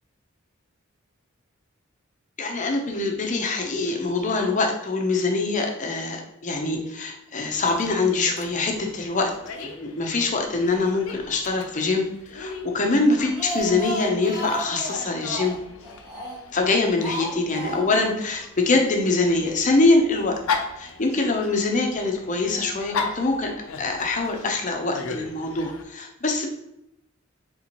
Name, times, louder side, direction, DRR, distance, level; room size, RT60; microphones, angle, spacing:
voice 1, 2.4-9.3 9.6-12.1 12.3-15.5 16.5-20.4 20.8-23.5 23.8-26.5, left 3 dB, 35° left, 2 dB, 0.7 m, -24 dB
Dog, 7.5-25.8, left 5 dB, 85° left, 0.5 m, -37 dB
Speech, 13.1-16.6 17.0-18.2 18.4-18.5 18.8-18.9, equal, 20° right, 0.8 m, -33 dB
4.2 x 3.5 x 2.9 m, 0.83 s
head